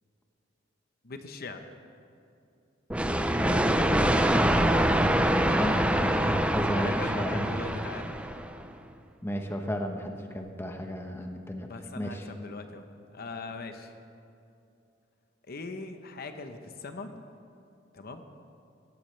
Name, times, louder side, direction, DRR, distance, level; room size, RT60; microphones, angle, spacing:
voice 1, 1.0-1.6 5.2-5.7 6.1-8.2 11.6-12.8 13.1-13.9 15.4-17.1 17.9-18.2, left 3 dB, 55° left, 6 dB, 0.9 m, -41 dB
sound 1, 2.9-8.6, right 1 dB, 5° right, 0.6 m, -25 dB
voice 2, 3.3-4.7 5.0-7.5 9.2-11.7 12.0-12.2, equal, 15° left, 4 dB, 1.0 m, -34 dB
18.0 x 15.5 x 3.3 m, 2.6 s
head